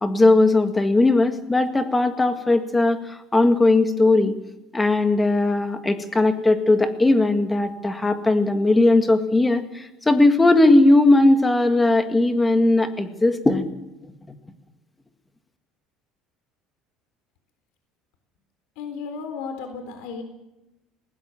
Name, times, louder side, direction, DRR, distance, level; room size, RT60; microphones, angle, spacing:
voice 1, 0.0-4.3 4.7-13.7, left 2 dB, 10° left, 7 dB, 1.9 m, -18 dB
voice 2, 18.8-20.2, left 5 dB, 80° left, 6 dB, 3.7 m, -34 dB
19.5 x 19.0 x 7.2 m, 0.95 s
cardioid pair, 145°, 0 cm